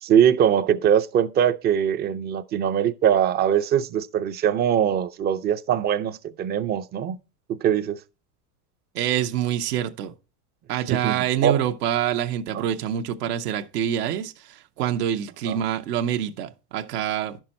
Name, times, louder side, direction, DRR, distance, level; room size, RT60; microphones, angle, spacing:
voice 1, 0.0-7.2 7.5-8.0 10.9-11.6 12.5-12.7 15.5-15.6, right 9 dB, 25° right, 0.4 m, -22 dB
voice 2, 8.9-10.1 10.7-17.4, right 10 dB, 80° right, 1.0 m, -26 dB
10.5 x 6.1 x 4.3 m
supercardioid pair, 120°, 47 cm